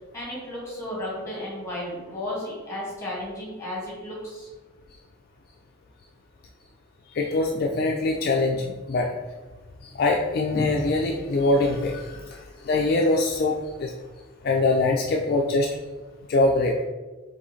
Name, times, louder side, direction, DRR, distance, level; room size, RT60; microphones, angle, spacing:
voice 1, 0.1-4.5, left 1 dB, 15° left, -4 dB, 1.4 m, -34 dB
voice 2, 7.1-9.1 9.9-13.9 14.4-15.7 16.3-16.8, left 2 dB, 45° left, 0 dB, 0.3 m, -23 dB
4.7 x 3.2 x 3.1 m, 1.3 s
head